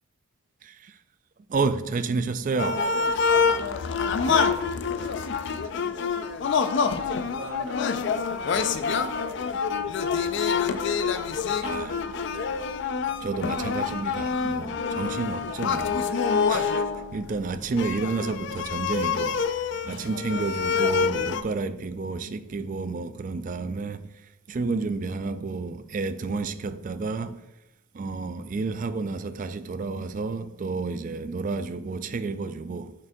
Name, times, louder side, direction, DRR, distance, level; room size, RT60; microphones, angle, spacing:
voice 1, 0.6-1.0 1.5-2.9 11.6-12.0 13.2-16.1 16.5-16.7 17.1-24.1 24.5-27.4 27.9-32.9, right 4 dB, 40° right, 0.3 m, -30 dB
sound 1, 2.6-21.4, left 5 dB, 55° left, 0.4 m, -26 dB
voice 2, 4.2-6.2 7.2-11.2 11.9-12.7, right 1 dB, 60° right, 0.8 m, -45 dB
7.1 x 6.5 x 2.6 m
head